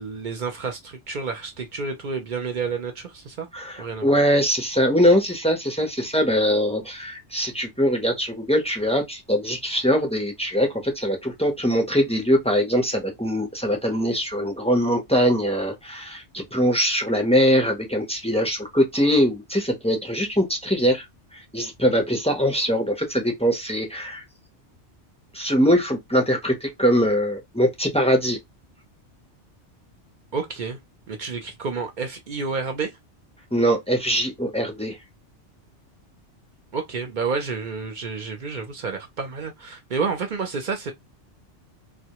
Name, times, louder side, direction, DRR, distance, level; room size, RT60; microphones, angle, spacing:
voice 1, 0.0-3.5 3.8-4.1 30.3-30.8 31.1-32.9 36.7-40.9, right 5 dB, 55° right, 0.6 m, -30 dB
voice 2, 3.5-21.0 21.5-24.2 25.3-28.4 33.5-35.0, equal, 10° left, 0.4 m, -22 dB
2.1 x 2.0 x 2.8 m
omnidirectional pair, 1.2 m